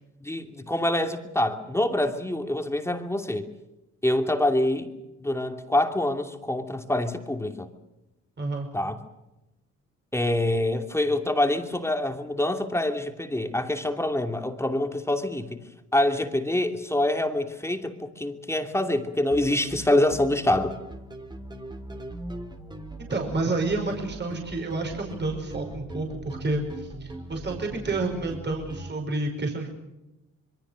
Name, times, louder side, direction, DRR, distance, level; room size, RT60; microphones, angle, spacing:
voice 1, 0.2-3.5 4.0-4.9 5.2-7.7 8.7-9.0 10.1-20.7, left 1 dB, 10° left, 5 dB, 2.8 m, -26 dB
voice 2, 8.4-8.7 23.1-29.7, right 2 dB, 35° right, 2 dB, 5.4 m, -29 dB
sound 1, 19.3-28.9, right 1 dB, 15° right, 3.2 m, -40 dB
26.0 x 23.0 x 6.5 m, 0.97 s
cardioid pair, 90°, 30 cm